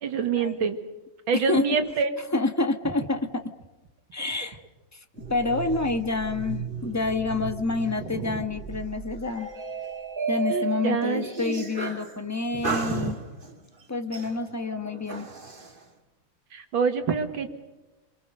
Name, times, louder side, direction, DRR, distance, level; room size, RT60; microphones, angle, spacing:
voice 1, 0.0-0.8 1.3-2.1 5.4-5.6 8.1-8.4 10.5-11.3 12.5-13.1 16.5-17.5, right 6 dB, 70° right, 7 dB, 2.5 m, -27 dB
voice 2, 2.3-3.4 4.1-4.6 4.9-5.0 5.3-9.5 10.3-13.2 13.9-15.3, left 3 dB, 10° left, 7 dB, 0.9 m, -28 dB
sound 1, 5.2-12.1 12.6-13.6 14.1-15.7, right 5 dB, 25° right, 2.2 m, -34 dB
28.5 x 23.5 x 6.7 m, 1.1 s
omnidirectional pair, 2.3 m